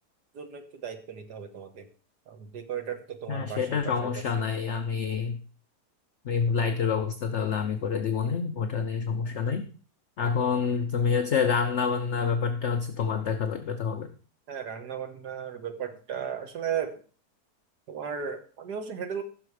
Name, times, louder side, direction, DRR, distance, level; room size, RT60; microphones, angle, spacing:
voice 1, 0.3-1.9 2.3-4.1 10.4-10.5 14.5-17.0 17.9-19.2, right 8 dB, 85° right, 7 dB, 2.0 m, -35 dB
voice 2, 3.3-5.4 6.2-9.7 10.2-14.1, left 6 dB, 55° left, 7 dB, 1.0 m, -27 dB
14.5 x 6.5 x 4.9 m, 0.40 s
omnidirectional pair, 1.7 m